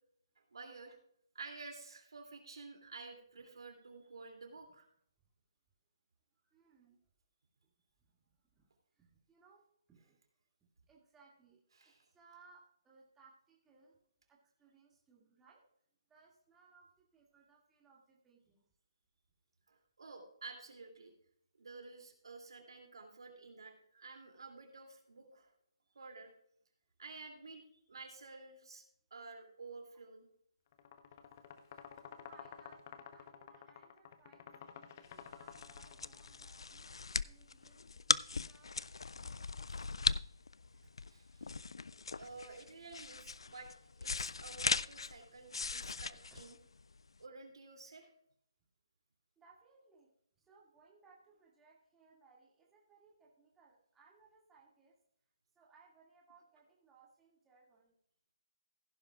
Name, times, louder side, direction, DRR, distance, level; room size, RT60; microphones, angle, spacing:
voice 1, 0.5-1.0 1.3-4.9 11.8-12.0 19.7-21.1 21.6-25.5 25.9-26.3 27.0-28.8 29.1-30.3 41.1-41.5 42.2-43.7 44.0-46.1 46.4-46.6 47.2-48.1, right 3 dB, 70° right, 3 dB, 2.7 m, -51 dB
voice 2, 6.4-7.0 7.6-7.7 8.0-10.2 10.9-15.6 16.1-18.7 26.2-26.3 32.0-36.9 37.2-40.2 42.2-42.7 45.3-46.8 49.4-55.0 55.5-57.9, right 4 dB, 10° right, -4 dB, 2.1 m, -66 dB
sound 1, 30.7-36.5, left 8 dB, 35° left, 0.9 m, -52 dB
sound 2, 35.2-47.2, left 4 dB, 75° left, 0.3 m, -38 dB
16.0 x 10.0 x 2.4 m, 0.67 s
figure-of-eight pair, 150°, 3 cm